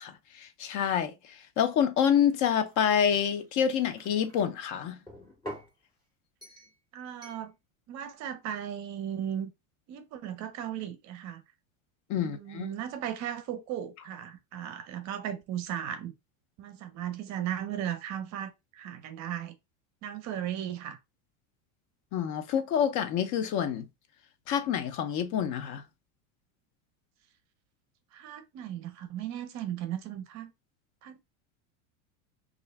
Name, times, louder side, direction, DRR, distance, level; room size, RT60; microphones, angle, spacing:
voice 1, 0.0-5.0 12.1-12.7 22.1-23.8 24.5-25.8, left 8 dB, 45° left, 0.7 m, -27 dB
sound 1, 2.2-4.5 5.1-5.7 6.4-6.8 7.2-7.5, equal, 10° left, 2.4 m, -47 dB
voice 2, 6.9-7.5 7.9-9.5 9.9-11.4 12.2-16.1 16.6-19.5 20.0-21.0 28.1-30.5 31.0-31.2, right 10 dB, 40° right, 0.6 m, -36 dB
3.3 x 2.5 x 3.3 m
supercardioid pair, 130°, 41 cm